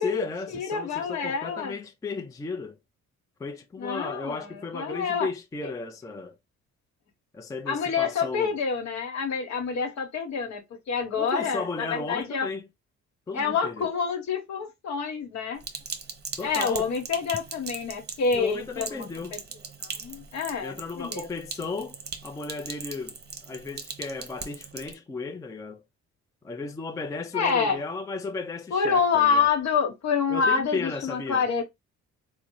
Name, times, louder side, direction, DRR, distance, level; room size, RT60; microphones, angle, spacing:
voice 1, 0.0-2.8 3.4-6.4 7.3-8.5 11.2-12.7 13.3-13.9 16.4-16.9 18.3-19.4 20.6-22.0 22.2-23.2 23.5-25.8 26.4-29.5 30.3-31.5, left 4 dB, 10° left, 0.4 m, -35 dB
voice 2, 0.5-1.7 3.8-5.3 7.7-10.6 10.9-12.5 13.3-15.6 16.4-19.4 19.8-21.3 27.3-27.8 28.7-31.6, left 6 dB, 65° left, 1.1 m, -27 dB
Sink (filling or washing), 15.6-24.9, right 5 dB, 35° right, 0.7 m, -40 dB
3.6 x 2.0 x 3.0 m
cardioid pair, 90°, 30 cm